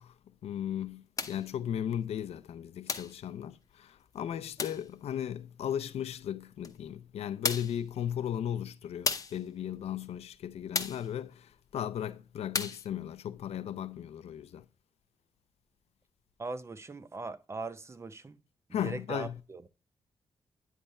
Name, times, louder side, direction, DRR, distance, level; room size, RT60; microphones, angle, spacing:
voice 1, 0.0-14.6 18.7-19.4, left 10 dB, 80° left, 0.5 m, -36 dB
sound 1, 1.2-1.5 2.9-3.2 4.6-4.9 6.6-6.7 7.4-7.8 9.1-9.4 10.7-11.1 12.5-12.9, left 5 dB, 35° left, 0.8 m, -33 dB
voice 2, 16.4-18.4 18.8-19.7, right 3 dB, 25° right, 0.6 m, -40 dB
10.0 x 3.4 x 5.3 m
cardioid pair, 115°, 10 cm